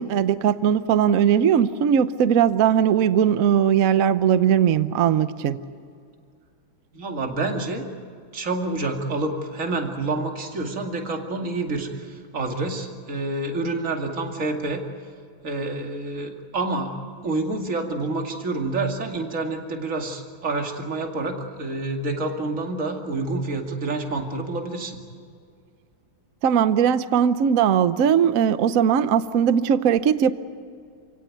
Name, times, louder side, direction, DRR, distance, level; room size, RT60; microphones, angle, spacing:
voice 1, 0.0-5.6 26.4-30.3, right 8 dB, 55° right, 13 dB, 1.0 m, -19 dB
voice 2, 6.9-7.9 8.3-14.8 15.4-16.9 17.2-25.0, right 2 dB, 40° right, 3 dB, 2.7 m, -28 dB
28.5 x 17.0 x 9.3 m, 2.3 s
omnidirectional pair, 2.2 m